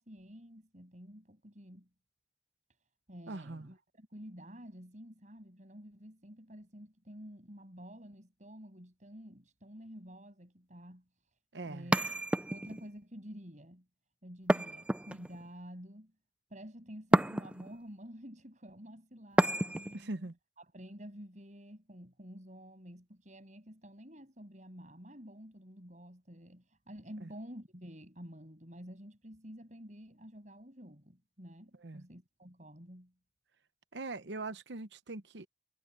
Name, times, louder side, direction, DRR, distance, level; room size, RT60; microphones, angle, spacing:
voice 1, 0.0-1.9 3.1-11.0 11.6-12.0 12.4-13.9 14.2-16.1 16.5-20.3 20.6-33.1, equal, 40° right, 7.2 m, -50 dB
voice 2, 3.3-3.7 11.5-11.9 19.9-20.4 27.2-27.3 31.8-32.0 33.9-35.5, right 2 dB, 75° right, 0.9 m, -41 dB
sound 1, 11.9-12.9 14.5-15.5 17.1-17.8 19.4-20.0, right 1 dB, 5° right, 0.4 m, -29 dB
head